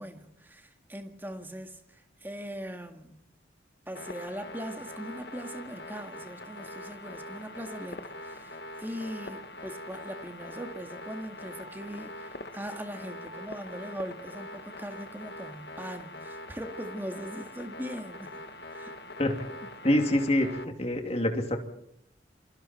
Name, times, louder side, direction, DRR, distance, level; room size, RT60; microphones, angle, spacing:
voice 1, 0.0-3.2 3.9-18.4 18.7-18.9 20.1-20.2, equal, 10° right, 5 dB, 2.1 m, -40 dB
sound 1, 4.0-20.7, left 1 dB, 60° left, 1.2 m, -43 dB
voice 2, 19.8-21.6, left 1 dB, 35° left, 4 dB, 2.8 m, -26 dB
27.5 x 24.0 x 4.5 m, 0.72 s
head